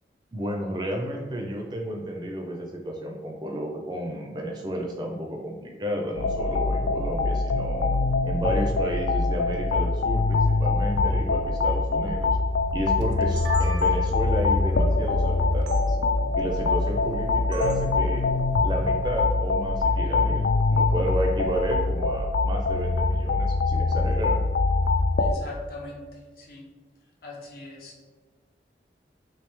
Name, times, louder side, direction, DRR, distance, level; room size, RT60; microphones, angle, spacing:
voice 1, 0.3-7.9 8.2-12.4 12.7-16.0 16.3-18.2 18.6-24.4, equal, 25° right, 0 dB, 0.4 m, -31 dB
sound 1, 6.2-25.3, left 3 dB, 80° left, 0.3 m, -24 dB
sound 2, 13.0-14.3 15.7-15.8 17.5-17.9, right 4 dB, 85° right, 0.4 m, -38 dB
voice 2, 25.2-26.7 27.2-28.0, left 2 dB, 55° left, -2 dB, 0.7 m, -41 dB
3.3 x 3.1 x 3.0 m, 1.4 s
head